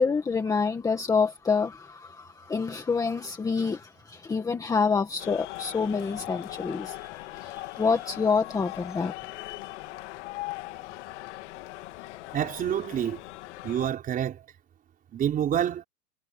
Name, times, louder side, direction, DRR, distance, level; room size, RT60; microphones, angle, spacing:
voice 1, 0.0-9.1, left 5 dB, 10° left, 1.8 m, -27 dB
sound 1, 5.2-13.9, left 19 dB, 50° left, 2.4 m, -40 dB
voice 2, 12.3-13.2 13.6-14.4 15.1-15.8, right 10 dB, 20° right, 5.2 m, -27 dB
supercardioid pair, 165°, 44 cm